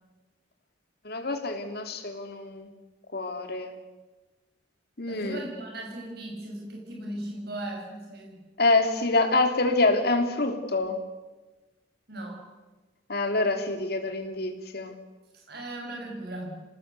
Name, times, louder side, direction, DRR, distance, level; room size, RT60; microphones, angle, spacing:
voice 1, 1.0-2.7 3.1-3.7 5.0-5.4 8.6-11.0 13.1-15.0, left 2 dB, 55° left, 6 dB, 3.1 m, -26 dB
voice 2, 5.1-8.5 12.1-12.4 15.3-16.6, right 1 dB, 60° right, 0 dB, 6.9 m, -38 dB
27.0 x 19.0 x 8.4 m, 1.2 s
head